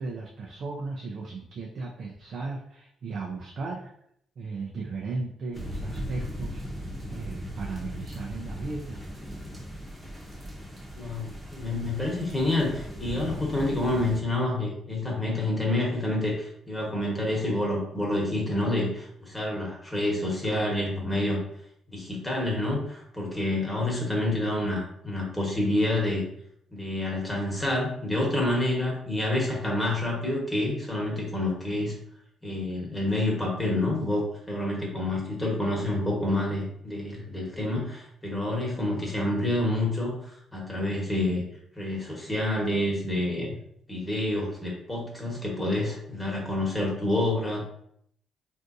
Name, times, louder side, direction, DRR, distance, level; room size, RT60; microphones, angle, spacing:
voice 1, 0.0-3.9 4.4-6.6 7.1-9.0, right 3 dB, 55° right, -1 dB, 0.5 m, -36 dB
sound 1, 5.5-14.2, equal, 15° right, 0.9 m, -38 dB
voice 2, 10.9-21.4 21.9-26.2 26.7-31.9 32.4-41.4 41.7-43.5 43.9-47.6, left 1 dB, 15° left, -3 dB, 1.2 m, -28 dB
3.5 x 2.5 x 2.6 m, 0.70 s
cardioid pair, 90°, 0 cm